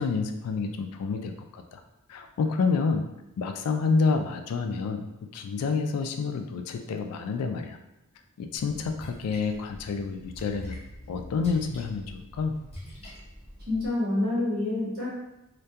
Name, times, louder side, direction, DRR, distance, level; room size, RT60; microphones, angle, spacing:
voice 1, 0.0-1.8 2.1-3.0 3.4-7.8 8.4-10.8 11.1-12.6, left 4 dB, 90° left, 9 dB, 0.3 m, -28 dB
Splash splatter, 8.6-13.9, left 1 dB, 30° left, 0.6 m, -44 dB
voice 2, 13.7-15.1, left 2 dB, 45° right, -7 dB, 1.0 m, -27 dB
2.2 x 2.2 x 2.7 m, 0.91 s
head